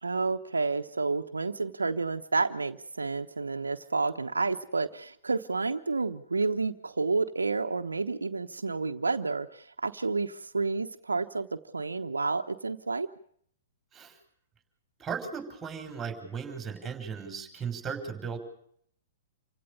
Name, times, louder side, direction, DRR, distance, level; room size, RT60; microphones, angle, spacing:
voice 1, 0.0-13.1, right 3 dB, 85° right, 7 dB, 1.0 m, -30 dB
voice 2, 15.0-18.4, right 6 dB, 15° right, 6 dB, 6.1 m, -36 dB
28.5 x 16.5 x 6.7 m, 0.65 s
hypercardioid pair, 115°, 0 cm